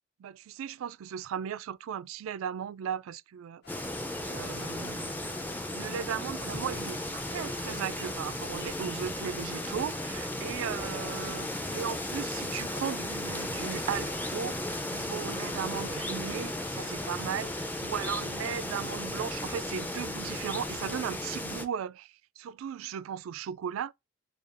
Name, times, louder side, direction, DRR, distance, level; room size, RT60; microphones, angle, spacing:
voice 1, 0.2-3.6 4.2-5.1 5.7-11.5 11.7-23.9, right 8 dB, 85° right, 0.3 m, -37 dB
sound 1, 3.6-21.0, left 4 dB, 50° left, 0.6 m, -51 dB
sound 2, 3.7-21.6, left 1 dB, 10° left, 0.4 m, -35 dB
6.6 x 2.3 x 2.5 m
head